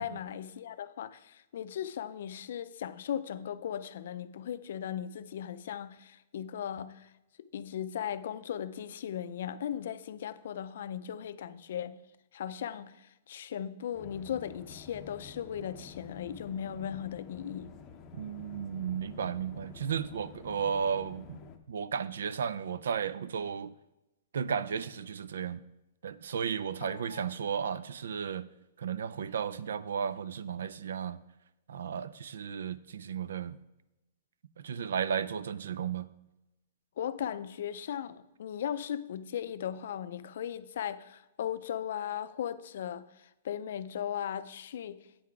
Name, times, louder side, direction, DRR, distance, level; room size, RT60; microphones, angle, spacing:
voice 1, 0.0-7.1 7.5-12.0 12.3-17.7 26.8-27.3 37.0-45.0, left 9 dB, 60° left, 0.4 m, -37 dB
sound 1, 13.9-21.6, left 5 dB, 20° left, 0.6 m, -50 dB
voice 2, 18.1-21.4 21.7-23.7 24.3-25.6 26.0-28.5 28.8-31.2 31.7-33.6 34.6-36.1, right 7 dB, 80° right, 0.4 m, -34 dB
8.6 x 5.8 x 4.8 m
hypercardioid pair, 165°, 0 cm